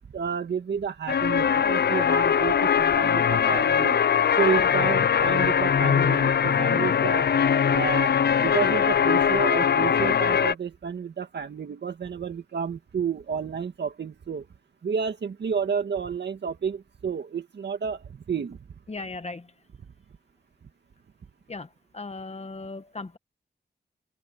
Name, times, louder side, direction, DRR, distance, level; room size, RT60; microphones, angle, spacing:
voice 1, 0.0-4.0 4.4-7.3 7.7-14.5 14.8-18.6, right 6 dB, 75° right, 1.9 m, -30 dB
sound 1, 1.1-10.5, left 7 dB, 65° left, 0.6 m, -21 dB
voice 2, 18.9-19.5 21.5-21.7 21.9-23.2, left 3 dB, 35° left, 1.7 m, -37 dB
open air
cardioid pair, 65°, 18 cm